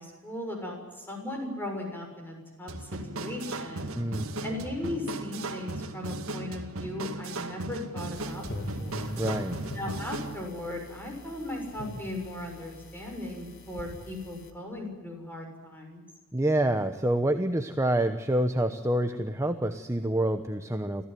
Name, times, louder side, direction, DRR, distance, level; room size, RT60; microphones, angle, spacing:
voice 1, 0.0-3.9 4.4-9.2 9.7-16.0, left 1 dB, 10° left, 2 dB, 6.7 m, -37 dB
sound 1, 2.7-10.4, right 2 dB, 65° right, 2.2 m, -37 dB
voice 2, 3.9-4.4 9.2-9.6 16.3-21.0, right 1 dB, 15° right, 7 dB, 1.0 m, -27 dB
sound 2, 8.2-14.5, left 1 dB, 50° left, 2.8 m, -42 dB
25.5 x 15.5 x 9.3 m, 1.3 s
head